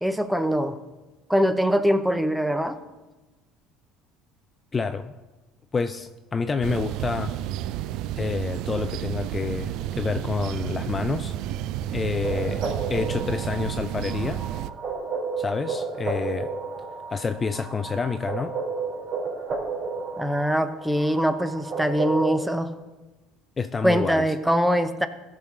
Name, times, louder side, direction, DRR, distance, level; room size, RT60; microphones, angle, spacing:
voice 1, 0.0-0.8 1.3-2.8 20.2-22.7 23.8-25.1, equal, ahead, 10 dB, 0.8 m, -23 dB
voice 2, 4.7-5.1 5.7-7.4 8.2-11.3 11.9-14.4 15.4-16.5 17.1-18.5 23.6-24.3, left 5 dB, 25° left, 9 dB, 0.5 m, -28 dB
sound 1, 6.6-14.7, right 13 dB, 65° right, 0.4 m, -31 dB
sound 2, 12.2-22.6, right 4 dB, 40° right, 2.7 m, -32 dB
15.0 x 6.3 x 3.8 m, 1.1 s
supercardioid pair, 100°, 0 cm